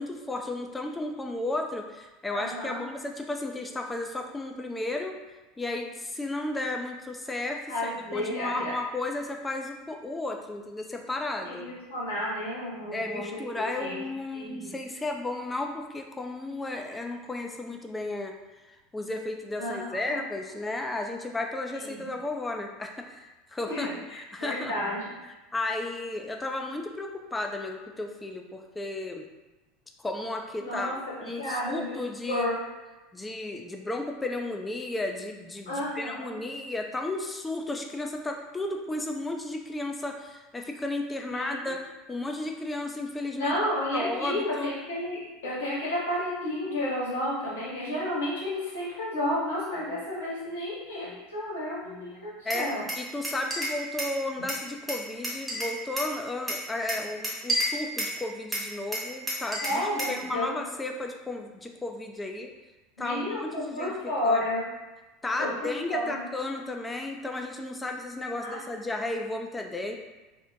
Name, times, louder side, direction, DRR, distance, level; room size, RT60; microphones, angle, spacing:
voice 1, 0.0-5.2 5.6-11.7 12.9-18.3 18.7-24.7 25.5-29.3 30.0-30.9 31.2-32.5 33.1-43.5 43.9-44.7 52.4-52.7 53.0-62.5 63.0-63.9 64.2-64.4 65.2-69.9, left 2 dB, 15° left, 3 dB, 0.3 m, -34 dB
voice 2, 2.3-2.8 7.7-8.7 11.4-14.0 14.3-14.7 19.6-20.2 21.7-22.1 23.7-25.0 30.6-31.0 31.3-32.0 32.3-32.6 35.7-36.4 41.3-41.7 43.3-52.8 59.6-60.6 63.0-64.6 65.4-66.2 68.4-68.6, left 1 dB, 80° left, -7 dB, 0.9 m, -32 dB
Glass, 52.5-54.2 54.5-56.1 56.5-58.2 58.5-60.2, equal, 10° right, 0.9 m, -31 dB
2.5 x 2.0 x 2.6 m, 1.1 s
hypercardioid pair, 80°, 0 cm